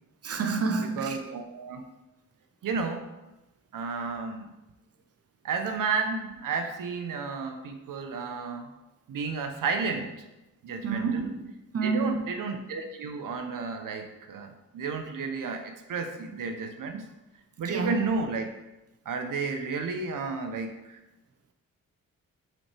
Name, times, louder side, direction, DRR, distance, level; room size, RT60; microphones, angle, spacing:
voice 1, 0.2-1.2 10.8-12.3 17.6-18.0, right 4 dB, 45° right, 0.9 m, -29 dB
voice 2, 0.7-1.8 2.6-3.1 3.7-4.5 5.4-8.7 9.1-10.1 10.6-11.3 11.8-17.1 17.6-18.5 19.0-21.0, right 4 dB, 75° right, 0.9 m, -32 dB
7.0 x 6.0 x 3.4 m
cardioid pair, 70°, 33 cm